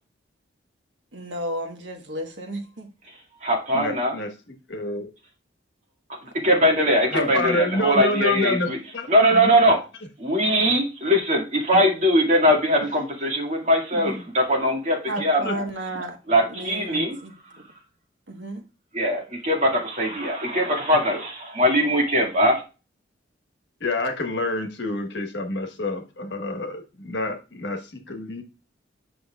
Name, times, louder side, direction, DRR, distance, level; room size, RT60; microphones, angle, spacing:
voice 1, 1.1-2.9 7.2-7.6 15.1-16.2 16.5-17.6 18.3-18.6, right 1 dB, 70° right, 4 dB, 1.3 m, -33 dB
voice 2, 3.1-4.2 6.2-8.8 9.1-9.8 10.2-15.6 16.3-17.2 17.4-17.8 18.9-22.6, equal, 40° right, 1 dB, 2.0 m, -21 dB
voice 3, 3.7-4.3 4.7-5.1 7.1-9.1 9.4-9.5 14.0-14.1 15.4-15.5 16.9-17.0 23.8-28.4, left 2 dB, 65° left, 5 dB, 1.3 m, -27 dB
8.1 x 6.0 x 2.4 m, 0.31 s
head